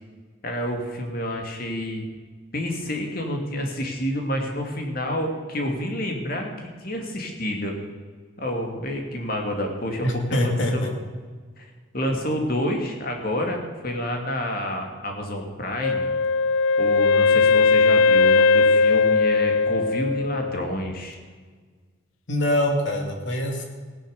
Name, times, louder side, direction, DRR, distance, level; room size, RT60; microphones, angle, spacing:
voice 1, 0.4-2.0 2.5-6.5 6.8-7.7 8.4-10.9 11.6-11.7 11.9-16.1 16.8-21.2, equal, 45° left, 2 dB, 2.7 m, -28 dB
voice 2, 10.0-10.9 22.3-23.6, left 1 dB, 65° left, 3 dB, 2.7 m, -24 dB
Wind instrument woodwind instrument, 15.8-20.7, left 4 dB, 80° left, 0.3 m, -19 dB
16.5 x 9.9 x 6.8 m, 1.5 s
head